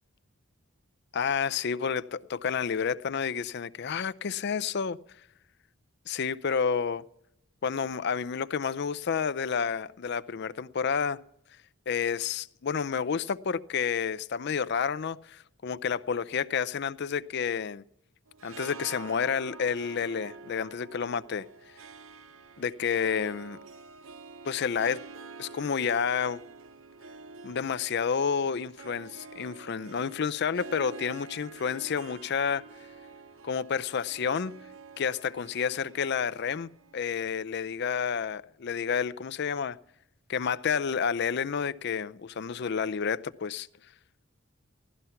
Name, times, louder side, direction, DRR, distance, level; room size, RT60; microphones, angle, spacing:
voice 1, 1.1-5.0 6.1-7.0 7.6-11.2 11.9-17.8 18.4-21.5 22.6-23.6 24.4-25.0 25.4-26.4 27.4-32.6 33.4-34.6 35.0-39.8 40.3-43.7, left 6 dB, 55° left, 0.5 m, -30 dB
Harp, 18.3-37.6, right 4 dB, 70° right, 0.8 m, -48 dB
16.5 x 12.5 x 5.7 m
head